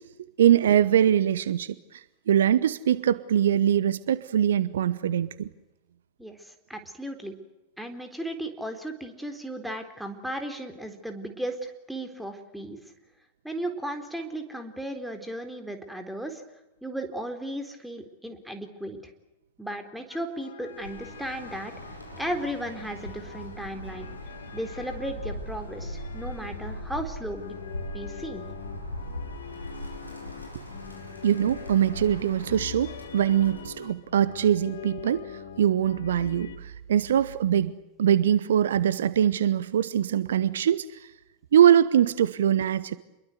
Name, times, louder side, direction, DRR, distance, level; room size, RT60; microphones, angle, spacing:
voice 1, 0.4-2.0 2.3-5.5 31.2-35.3 35.6-37.7 38.0-40.9 41.5-42.9, right 10 dB, 60° right, 17 dB, 0.9 m, -22 dB
voice 2, 6.2-7.3 7.8-12.8 13.4-16.4 16.8-19.0 19.6-21.7 22.2-24.1 24.5-27.4 27.9-28.5, right 1 dB, ahead, 6 dB, 3.9 m, -35 dB
sound 1, 20.1-36.6, left 9 dB, 60° left, 2.2 m, -44 dB
Bird, 20.7-33.8, left 1 dB, 85° left, 5.4 m, -40 dB
28.0 x 22.5 x 8.1 m, 0.97 s
figure-of-eight pair, 90°, 0 cm